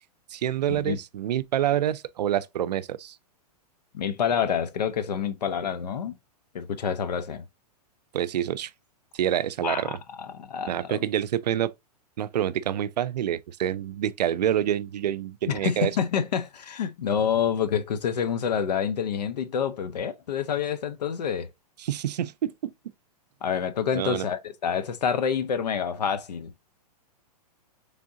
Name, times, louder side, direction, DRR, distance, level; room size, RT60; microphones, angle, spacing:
voice 1, 0.3-3.2 8.1-8.7 9.1-10.0 10.7-11.7 12.2-15.9 21.8-22.7 23.9-24.3, right 11 dB, 85° right, 0.4 m, -27 dB
voice 2, 3.9-6.2 6.5-7.5 9.6-9.9 10.2-11.0 15.5-21.5 23.4-26.5, left 7 dB, 85° left, 0.8 m, -27 dB
3.6 x 3.5 x 2.7 m
hypercardioid pair, 140°, 20 cm